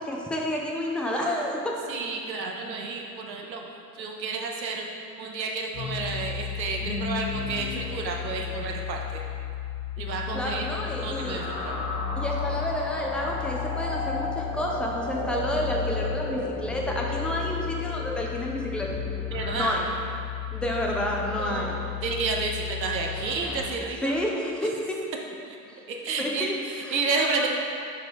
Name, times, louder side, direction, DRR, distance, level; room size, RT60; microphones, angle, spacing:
voice 1, 0.0-1.8 10.3-11.4 12.2-18.9 19.5-19.8 20.5-21.8 24.0-25.0 26.2-27.5, left 1 dB, ahead, -1 dB, 0.5 m, -30 dB
voice 2, 1.9-3.7 3.9-4.9 5.2-9.2 10.0-10.7 11.0-11.8 19.3-19.8 21.4-24.1 25.5-25.6 25.9-27.5, right 4 dB, 90° right, 1 dB, 0.7 m, -31 dB
sound 1, 5.7-23.6, left 6 dB, 85° left, 1.2 m, -33 dB
6.7 x 3.2 x 4.5 m, 2.4 s
figure-of-eight pair, 80°, 50 cm